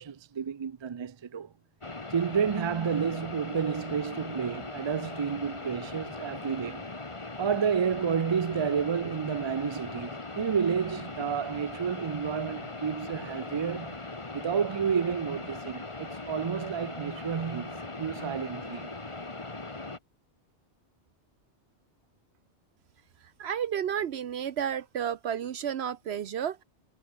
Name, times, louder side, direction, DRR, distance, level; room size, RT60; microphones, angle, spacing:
voice 1, 0.0-1.5 2.1-6.8 7.4-14.0 14.3-18.9, right 7 dB, 50° right, 0.3 m, -30 dB
sound 1, 1.8-20.0, left 2 dB, 30° left, 1.7 m, -40 dB
voice 2, 23.4-26.6, right 9 dB, 75° right, 1.0 m, -31 dB
omnidirectional pair, 1.1 m